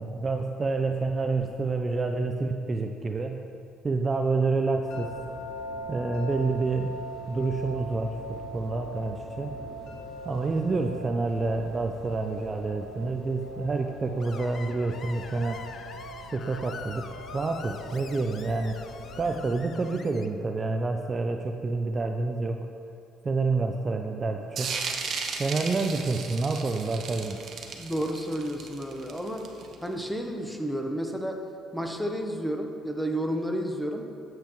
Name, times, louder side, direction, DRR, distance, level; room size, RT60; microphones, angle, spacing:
voice 1, 0.0-3.4 3.8-5.1 5.9-7.0 7.3-9.6 10.2-15.8 16.3-18.8 19.2-22.6 23.2-24.8 25.4-27.4, right 3 dB, 30° right, 4 dB, 0.5 m, -28 dB
sound 1, 4.8-19.5, equal, 75° left, 1.6 m, -41 dB
Screech, 14.2-20.3, left 6 dB, 50° left, 0.5 m, -45 dB
sound 2, 24.6-29.9, right 5 dB, 55° right, 0.9 m, -35 dB
voice 2, 27.7-29.5 29.8-31.4 31.7-34.1, equal, ahead, 3 dB, 0.9 m, -31 dB
11.5 x 7.7 x 3.1 m, 2.5 s
cardioid pair, 105°, 0 cm